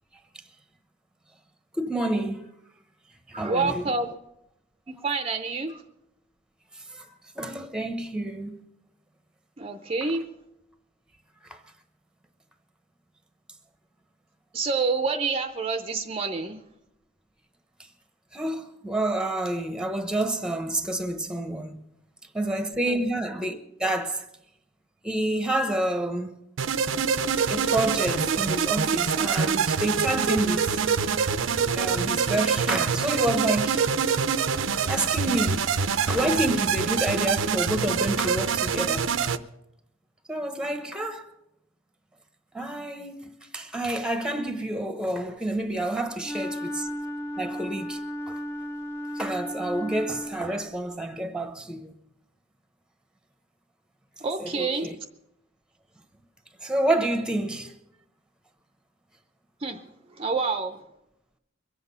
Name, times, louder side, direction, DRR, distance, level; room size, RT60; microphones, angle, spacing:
voice 1, 1.8-2.5 3.3-3.8 6.9-7.1 7.4-8.6 11.5-11.6 18.3-21.8 22.3-24.2 25.0-26.4 27.5-30.8 31.7-33.8 34.8-35.7 36.1-39.1 40.3-41.3 42.5-43.2 43.5-46.9 47.4-48.0 48.3-48.4 49.2-51.9 54.4-54.9 56.6-57.7, right 1 dB, 5° right, 0.9 m, -28 dB
voice 2, 3.3-4.1 4.9-5.8 9.6-10.2 14.5-16.6 22.9-23.0 54.2-54.9 59.6-59.9 60.1-60.8, right 4 dB, 30° right, 0.6 m, -28 dB
sound 1, 26.6-39.4, right 6 dB, 70° right, 0.6 m, -25 dB
Wind instrument woodwind instrument, 46.2-50.7, equal, 15° left, 1.6 m, -34 dB
22.5 x 8.1 x 5.6 m
head